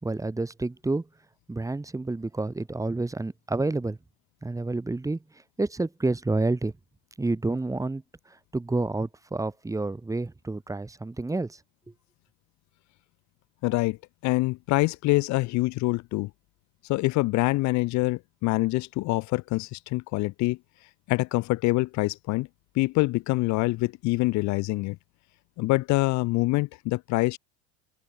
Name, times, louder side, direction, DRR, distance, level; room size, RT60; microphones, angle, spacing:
voice 1, 0.0-1.1 1.5-4.0 4.4-5.2 5.6-6.7 7.2-8.0 8.3-11.6, right 2 dB, 10° right, 2.2 m, -29 dB
voice 2, 13.6-14.0 14.2-16.3 16.9-20.6 21.1-22.5 22.7-25.0 25.6-27.4, left 21 dB, 50° left, 1.0 m, -25 dB
open air
supercardioid pair, 110°, 37 cm